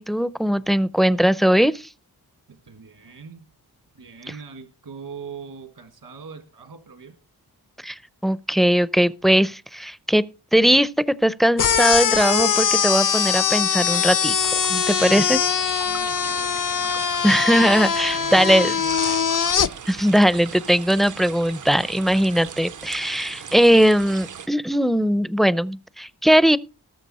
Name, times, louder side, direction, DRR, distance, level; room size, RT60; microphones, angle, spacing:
voice 1, 0.0-1.9 7.8-10.2 10.5-15.4 17.2-18.7 19.9-26.6, equal, ahead, 0.5 m, -19 dB
voice 2, 2.5-3.5 3.9-7.2 15.2-15.3 15.9-17.0 18.0-19.3, right 5 dB, 75° right, 1.8 m, -41 dB
sound 1, 11.6-19.7, left 7 dB, 55° left, 0.6 m, -22 dB
sound 2, 14.3-24.5, right 7 dB, 50° right, 0.6 m, -38 dB
19.0 x 7.0 x 4.2 m
wide cardioid pair, 75°, 38 cm